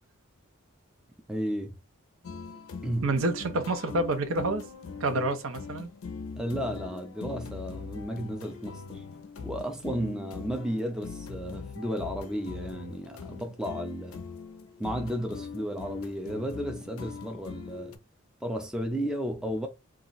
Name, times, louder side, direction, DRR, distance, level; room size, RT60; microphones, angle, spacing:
voice 1, 1.3-1.8 2.8-3.1 6.4-9.0 9.4-14.2 14.8-18.0 18.4-19.7, equal, 5° right, 0.3 m, -33 dB
sound 1, 2.2-18.0, left 5 dB, 75° left, 0.4 m, -41 dB
voice 2, 3.0-4.7 5.0-5.9, right 2 dB, 70° right, 0.6 m, -28 dB
2.4 x 2.0 x 3.8 m
head